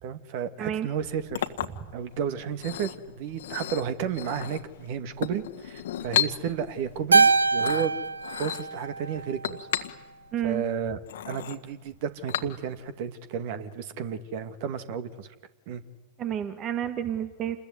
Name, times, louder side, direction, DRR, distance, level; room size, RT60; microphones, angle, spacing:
voice 1, 0.0-1.5 1.9-7.9 8.4-9.7 10.4-11.0 11.3-15.3 15.7-15.8, right 8 dB, 50° right, 11 dB, 2.3 m, -32 dB
Chink clink, 0.9-12.9, left 11 dB, 60° left, 1.7 m, -35 dB
Keyboard (musical), 7.1-9.6, right 4 dB, 75° right, 1.0 m, -23 dB
voice 2, 10.3-10.6 16.2-17.6, right 10 dB, 30° right, 10 dB, 1.6 m, -30 dB
29.0 x 21.5 x 9.6 m, 1.2 s
figure-of-eight pair, 90°, 0 cm